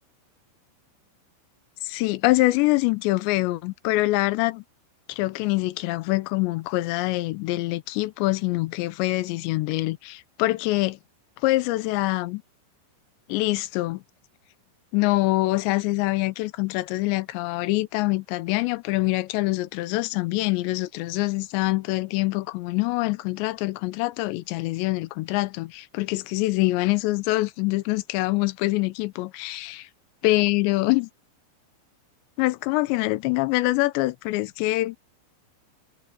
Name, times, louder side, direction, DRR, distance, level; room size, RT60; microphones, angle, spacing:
voice 1, 1.8-4.6 5.1-11.0 11.4-12.4 13.3-14.0 14.9-29.8 30.2-31.1 32.4-35.0, left 20 dB, 80° left, 2.6 m, -25 dB
omnidirectional pair, 6.0 m